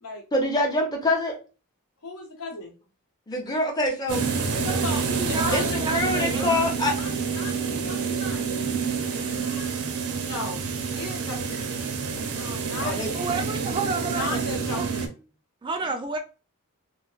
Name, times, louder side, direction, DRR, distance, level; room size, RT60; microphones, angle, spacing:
voice 1, 0.3-1.3 3.3-4.2 5.5-6.9 12.8-13.1, left 1 dB, 20° left, 0 dB, 0.6 m, -25 dB
voice 2, 2.0-2.7 4.5-6.7 6.9-8.5 9.1-9.7 10.2-11.7 12.0-13.5 14.1-15.2, left 2 dB, 85° left, 0 dB, 1.0 m, -37 dB
sound 1, 4.1-15.1, right 5 dB, 75° right, 0.5 m, -28 dB
voice 3, 5.1-6.5 13.1-14.4 14.8-14.9 15.6-16.2, right 4 dB, 20° right, 5 dB, 0.3 m, -30 dB
3.0 x 2.0 x 2.3 m, 0.33 s
head